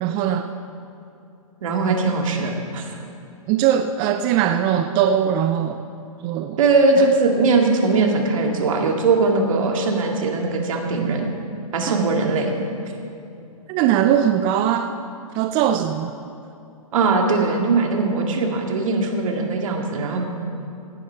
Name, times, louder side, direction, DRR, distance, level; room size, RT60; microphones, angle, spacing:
voice 1, 0.0-0.5 3.5-5.8 6.2-6.6 7.0-7.1 11.9-12.0 13.7-14.9 15.3-16.1, right 10 dB, 25° right, 7 dB, 0.4 m, -20 dB
voice 2, 1.6-2.9 6.6-11.3 11.7-12.5 16.9-20.4, right 3 dB, 60° right, 2 dB, 2.3 m, -20 dB
17.0 x 10.0 x 4.7 m, 2.7 s
hypercardioid pair, 135°, 19 cm